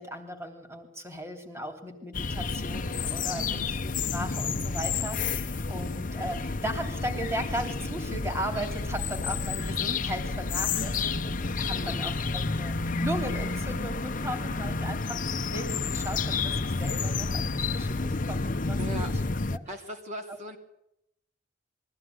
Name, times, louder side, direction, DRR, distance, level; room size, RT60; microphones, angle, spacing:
voice 1, 0.0-19.2 19.5-19.6 20.3-20.4, equal, 15° right, 5 dB, 3.2 m, -37 dB
sound 1, 2.1-19.6, left 4 dB, 45° left, 0.9 m, -30 dB
voice 2, 3.3-3.7 11.7-12.0 18.8-19.1 19.6-20.6, equal, 40° right, 3 dB, 2.9 m, -39 dB
22.0 x 15.5 x 9.5 m, 0.79 s
head